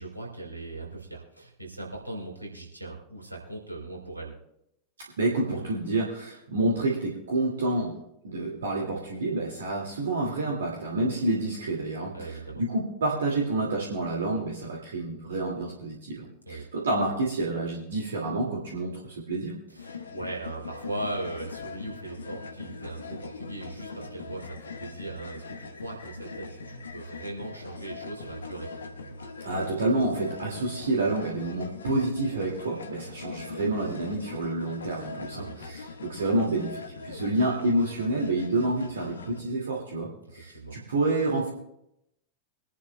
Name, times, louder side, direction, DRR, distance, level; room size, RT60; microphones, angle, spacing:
voice 1, 0.0-4.4 12.1-12.6 16.5-16.7 19.7-28.7 35.3-35.6 40.5-40.8, right 2 dB, 85° right, -1 dB, 3.6 m, -39 dB
voice 2, 5.2-8.0 8.2-19.6 29.4-41.5, right 2 dB, 65° right, -2 dB, 2.1 m, -28 dB
sound 1, 19.8-39.4, left 4 dB, 70° left, 1.1 m, -41 dB
24.0 x 11.0 x 2.2 m, 0.80 s
figure-of-eight pair, 90°, 0 cm